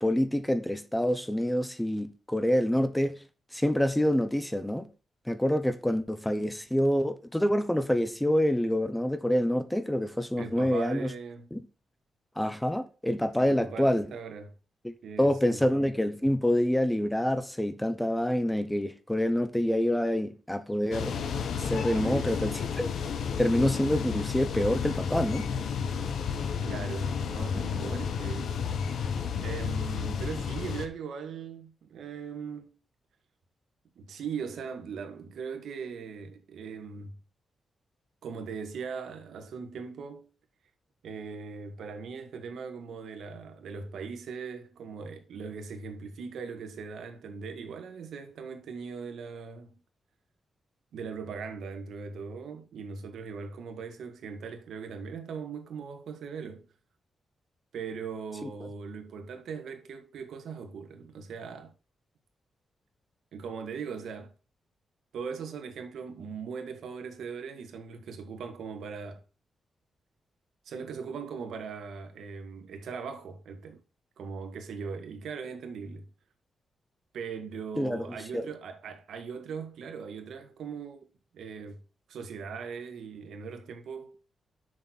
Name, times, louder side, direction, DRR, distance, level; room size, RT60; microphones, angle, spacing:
voice 1, 0.0-3.2 3.5-4.9 5.3-11.1 11.5-11.6 12.4-14.1 14.8-21.2 21.5-22.9 23.4-25.5 77.8-78.0 78.3-78.5, equal, 5° left, 0.7 m, -27 dB
voice 2, 10.4-11.5 13.4-14.5 15.0-15.6 21.9-22.6 26.6-28.5 29.4-32.7 34.0-37.2 38.2-40.3 41.0-49.8 50.9-56.7 57.7-61.7 63.3-64.3 65.1-69.2 70.7-73.8 74.2-76.1 77.1-81.1 81.3-81.8 82.1-84.2, right 5 dB, 80° right, 1.7 m, -39 dB
sound 1, 20.9-30.9, left 6 dB, 70° left, 1.1 m, -32 dB
7.2 x 6.2 x 4.1 m
wide cardioid pair, 145°, 0 cm